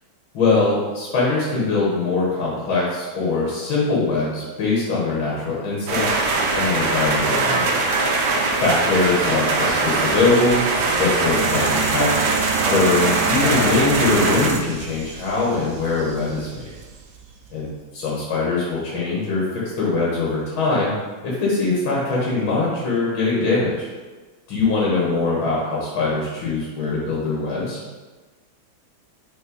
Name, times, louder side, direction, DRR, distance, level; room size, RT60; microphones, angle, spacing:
voice 1, 0.3-6.2 6.5-7.8 8.6-10.6 11.0-12.2 12.7-16.7 17.5-20.9 21.2-23.9 24.5-27.8, left 3 dB, 80° left, -6 dB, 2.1 m, -22 dB
sound 1, 5.9-14.5, right 3 dB, 65° right, 1.2 m, -21 dB
sound 2, 9.6-17.7, right 7 dB, 90° right, 0.7 m, -31 dB
5.6 x 4.2 x 4.0 m, 1.3 s
omnidirectional pair, 2.2 m